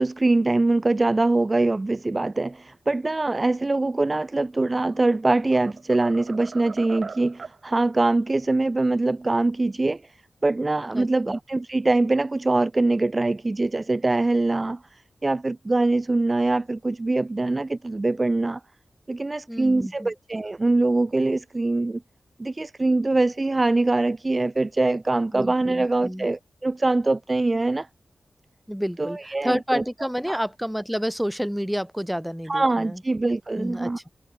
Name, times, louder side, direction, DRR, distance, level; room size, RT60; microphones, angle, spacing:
voice 1, 0.0-10.0 10.4-18.6 19.1-22.0 22.4-27.9 29.0-29.8 30.3-30.4 32.5-34.0, right 2 dB, 30° right, 1.1 m, -23 dB
sound 1, 4.7-5.1 5.5-7.6, right 5 dB, 65° right, 2.5 m, -40 dB
voice 2, 10.9-11.4 19.5-20.1 25.3-26.3 28.7-33.0 33.6-34.1, equal, ahead, 3.1 m, -29 dB
wide cardioid pair, 85°, 0 cm